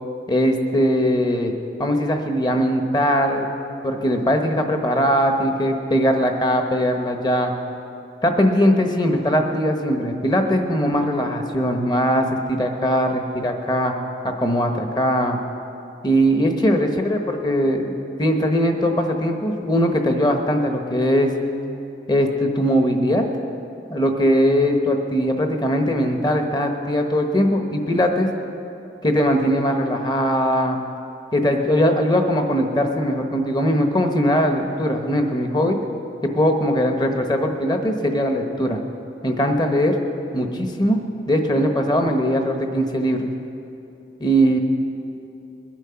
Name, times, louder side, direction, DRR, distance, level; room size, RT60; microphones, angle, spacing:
voice 1, 0.3-1.5 1.8-3.5 3.8-7.5 8.2-13.9 14.2-15.4 16.0-17.9 18.2-21.3 22.1-23.2 23.9-28.3 29.0-30.8 31.3-35.8 36.2-38.8 39.2-40.0 40.3-41.0 41.3-43.3 44.2-44.6, equal, 25° left, 4 dB, 1.1 m, -20 dB
21.5 x 9.0 x 5.8 m, 2.7 s
head